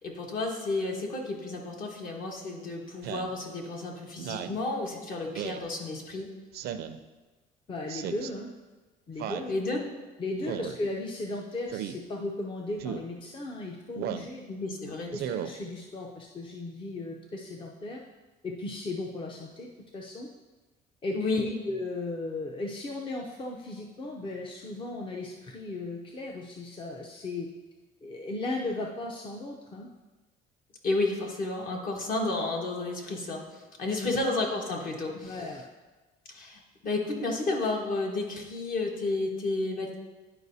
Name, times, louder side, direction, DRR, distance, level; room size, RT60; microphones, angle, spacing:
voice 1, 0.0-6.3 9.5-9.8 14.5-15.1 21.1-21.5 30.8-35.4 36.3-40.0, left 2 dB, 55° left, 0 dB, 1.5 m, -31 dB
Speech synthesizer, 3.0-3.3 4.2-4.6 5.3-5.6 6.5-7.0 7.9-8.3 9.2-9.5 10.4-10.8 11.7-12.0 12.8-13.1 14.0-14.3 15.1-15.5, right 9 dB, 70° right, 0.5 m, -35 dB
voice 2, 7.7-8.5 9.1-9.5 10.2-14.5 15.1-18.0 18.4-19.7 19.9-20.3 21.0-27.5 28.0-29.9 33.8-34.2 35.2-35.6, left 2 dB, 30° left, 0 dB, 0.6 m, -36 dB
11.0 x 4.7 x 2.7 m, 1.2 s
cardioid pair, 110°, 17 cm